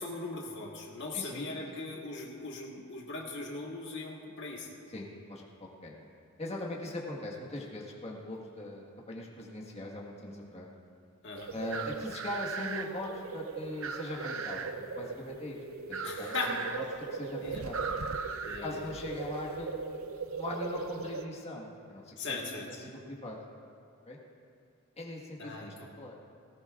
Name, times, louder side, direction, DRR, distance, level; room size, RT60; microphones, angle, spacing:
voice 1, 0.0-4.7 11.2-11.6 16.0-16.6 17.4-17.6 18.4-18.8 22.2-22.7 25.4-25.9, left 3 dB, 60° left, -2 dB, 1.6 m, -39 dB
voice 2, 1.1-1.5 4.9-6.0 6.4-10.7 11.5-15.6 15.9-16.8 17.1-17.9 18.6-19.9 20.3-23.4 24.1-24.2 25.0-25.5 26.0-26.2, left 1 dB, 30° left, -3 dB, 1.6 m, -40 dB
sound 1, 11.3-21.2, right 5 dB, 65° right, 0.6 m, -38 dB
19.0 x 17.5 x 2.5 m, 2.4 s
head